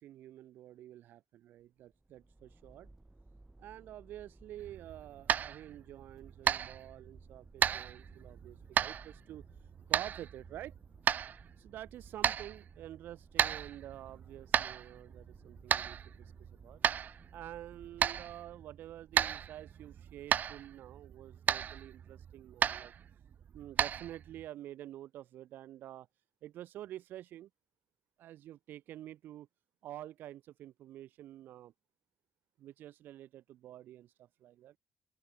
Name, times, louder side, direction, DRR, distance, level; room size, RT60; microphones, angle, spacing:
voice 1, 0.0-2.9 3.6-10.7 11.6-16.8 17.3-22.9 23.5-26.1 26.4-27.5 28.2-29.5 29.8-31.7 32.6-34.7, right 13 dB, 85° right, 1.6 m, -49 dB
sound 1, 1.6-18.9, right 2 dB, 15° right, 3.0 m, -60 dB
sound 2, 4.6-24.5, right 8 dB, 60° right, 1.5 m, -35 dB
open air
cardioid pair, 95°, 3 cm